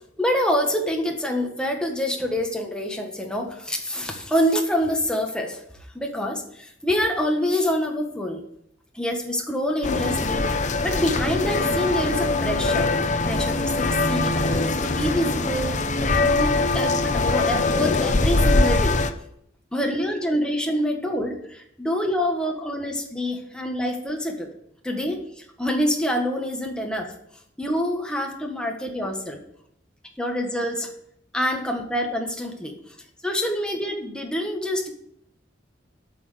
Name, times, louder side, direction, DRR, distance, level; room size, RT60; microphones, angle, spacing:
voice 1, 0.2-5.6 5.9-8.4 8.9-10.4 10.8-12.9 13.3-19.0 19.7-24.5 24.8-25.2 25.6-27.1 27.6-29.4 30.2-30.9 31.3-32.7 33.2-34.9, equal, 5° left, 1 dB, 1.6 m, -26 dB
sound 1, 9.8-19.1, left 3 dB, 40° left, 0.7 m, -22 dB
8.5 x 6.3 x 8.0 m, 0.72 s
head